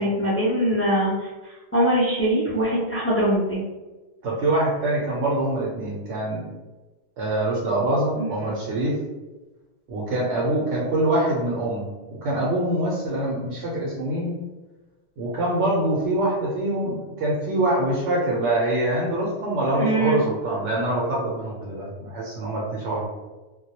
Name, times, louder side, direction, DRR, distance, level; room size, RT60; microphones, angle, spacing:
voice 1, 0.0-3.6 8.2-8.3 19.7-20.2, right 1 dB, 20° left, -7 dB, 0.4 m, -22 dB
voice 2, 4.2-6.5 7.2-9.0 9.9-14.4 15.2-23.1, right 1 dB, 90° right, -6 dB, 0.9 m, -24 dB
2.2 x 2.0 x 2.7 m, 1.2 s
omnidirectional pair, 1.1 m